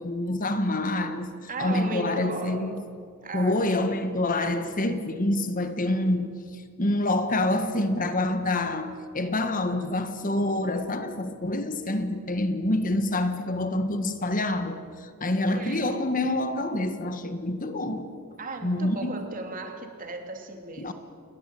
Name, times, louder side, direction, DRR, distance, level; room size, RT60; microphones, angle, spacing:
voice 1, 0.0-1.3 1.6-2.7 3.3-18.1 18.6-19.1 20.8-20.9, left 1 dB, 40° left, 1.6 m, -27 dB
voice 2, 1.5-2.7 3.2-3.6 15.5-16.1 18.4-20.9, right 3 dB, 40° right, 3.2 m, -36 dB
28.5 x 21.5 x 8.6 m
head